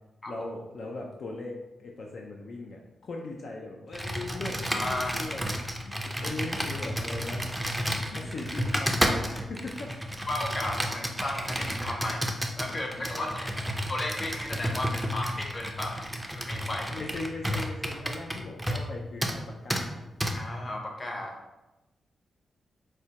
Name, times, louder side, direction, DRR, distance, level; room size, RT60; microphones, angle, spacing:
voice 1, 0.3-5.5 5.8-7.5 8.1-9.9 13.1-13.5 16.6-20.0, left 2 dB, 65° left, 0 dB, 0.4 m, -39 dB
Computer keyboard, 3.9-18.9 19.2-19.4 19.7-19.8 20.2-20.3, equal, 5° right, 0.4 m, -31 dB
voice 2, 4.7-5.1 8.1-8.2 10.3-12.3 12.6-13.5 13.9-16.1 16.3-16.9 20.3-21.4, left 1 dB, 30° left, 1 dB, 0.7 m, -34 dB
4.7 x 2.1 x 2.8 m, 1.0 s
cardioid pair, 80°, 0 cm